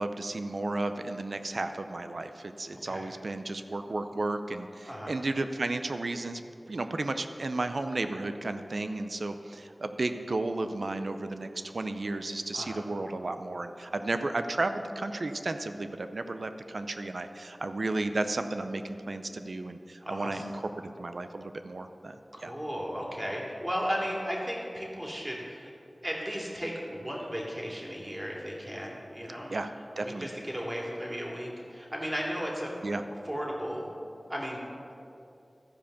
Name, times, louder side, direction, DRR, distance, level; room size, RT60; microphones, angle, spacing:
voice 1, 0.0-6.4 6.7-22.5 29.5-30.3 32.8-33.0, right 2 dB, 75° right, 8 dB, 0.5 m, -33 dB
voice 2, 2.7-3.1 4.9-5.1 12.5-12.8 20.0-20.4 22.3-25.7 26.0-29.5 30.0-32.7 33.2-33.9 34.3-34.6, equal, 20° right, -3 dB, 2.6 m, -35 dB
14.0 x 5.1 x 6.8 m, 2.7 s
wide cardioid pair, 45°, 0 cm